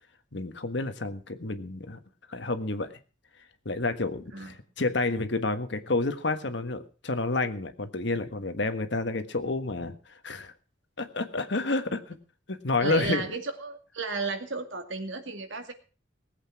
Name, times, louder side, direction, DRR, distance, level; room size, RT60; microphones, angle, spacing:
voice 1, 0.3-2.0 2.3-3.0 3.6-9.9 10.2-10.5 11.0-12.2 12.5-13.3, left 2 dB, 65° left, 9 dB, 1.5 m, -29 dB
voice 2, 12.8-15.7, right 3 dB, 80° right, 6 dB, 2.3 m, -34 dB
19.0 x 8.2 x 5.9 m, 0.37 s
head